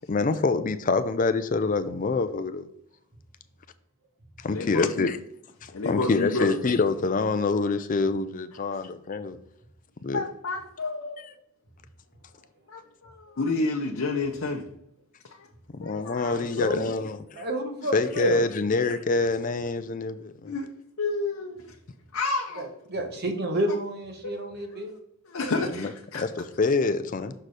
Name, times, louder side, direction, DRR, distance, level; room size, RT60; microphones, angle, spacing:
voice 1, 0.1-2.7 4.4-5.2 5.6-9.4 10.0-10.2 15.7-17.5 17.9-20.5 25.8-27.3, left 3 dB, 35° left, 0.4 m, -26 dB
voice 2, 4.5-5.1 5.7-6.6 10.1-11.3 12.7-14.6 15.3-15.5 15.8-16.3 20.4-20.7 21.0-21.7 22.1-22.8 24.2-24.8 25.2-26.2, left 3 dB, 70° left, 0.7 m, -30 dB
voice 3, 16.2-16.9 17.4-18.4 22.6-24.9, right 1 dB, 45° right, 1.1 m, -30 dB
6.5 x 4.2 x 4.7 m
head